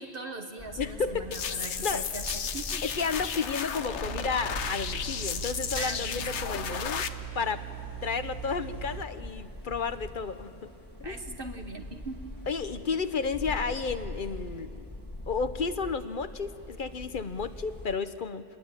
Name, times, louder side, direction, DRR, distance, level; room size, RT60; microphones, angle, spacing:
voice 1, 0.0-2.8 5.8-6.5 11.0-12.2, right 2 dB, 50° right, 4 dB, 1.5 m, -40 dB
sound 1, 0.6-18.0, left 1 dB, 15° left, 1.8 m, -43 dB
voice 2, 0.8-1.4 1.7-2.0 2.8-7.1 7.3-7.6 8.0-10.7 11.0-11.2 12.5-14.9 15.3-18.4, left 5 dB, 50° left, 12 dB, 1.0 m, -32 dB
sound 2, 1.3-7.1, left 7 dB, 75° left, 1.2 m, -34 dB
sound 3, 4.0-9.0, right 14 dB, 85° right, 1.6 m, -41 dB
27.0 x 21.0 x 9.0 m, 2.4 s
omnidirectional pair, 1.2 m